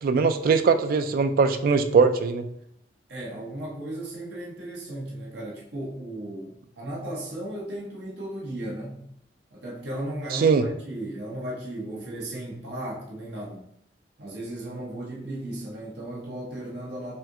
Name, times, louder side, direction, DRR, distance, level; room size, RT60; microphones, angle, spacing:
voice 1, 0.0-2.5 10.3-10.6, right 5 dB, 55° right, 9 dB, 0.3 m, -21 dB
voice 2, 3.1-9.0 9.5-13.6 14.2-17.2, right 1 dB, 70° right, -3 dB, 1.0 m, -35 dB
5.5 x 2.4 x 2.7 m, 0.74 s
head